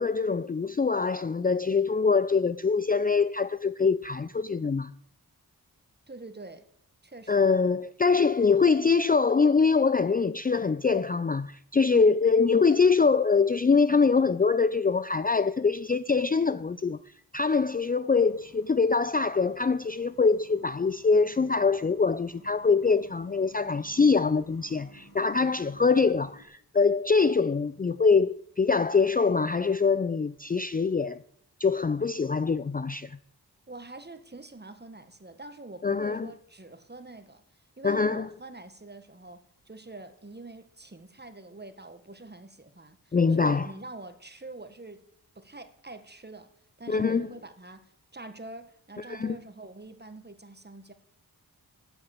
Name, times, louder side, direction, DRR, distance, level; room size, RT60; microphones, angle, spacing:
voice 1, 0.0-4.9 7.3-17.0 17.3-31.2 31.6-33.2 35.8-36.3 37.8-38.3 43.1-43.7 46.9-47.3 49.1-49.4, left 4 dB, 25° left, 0.4 m, -24 dB
voice 2, 6.1-6.7 7.0-7.5 11.9-12.1 33.7-37.4 37.8-45.0 45.3-46.5 46.8-50.9, right 2 dB, 25° right, 1.6 m, -45 dB
sound 1, 18.1-26.4, equal, 70° left, 3.3 m, -55 dB
12.0 x 7.8 x 8.4 m
cardioid pair, 45°, 38 cm